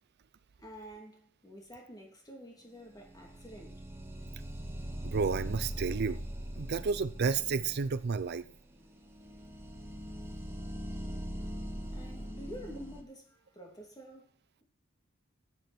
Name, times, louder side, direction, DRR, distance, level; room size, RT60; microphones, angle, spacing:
voice 1, 0.6-3.8 11.9-14.3, equal, 20° left, 2.9 m, -49 dB
sound 1, 2.9-13.0, equal, 10° right, 1.7 m, -41 dB
voice 2, 5.0-6.2 6.6-8.4, right 5 dB, 55° right, 0.5 m, -31 dB
12.5 x 9.2 x 4.4 m
head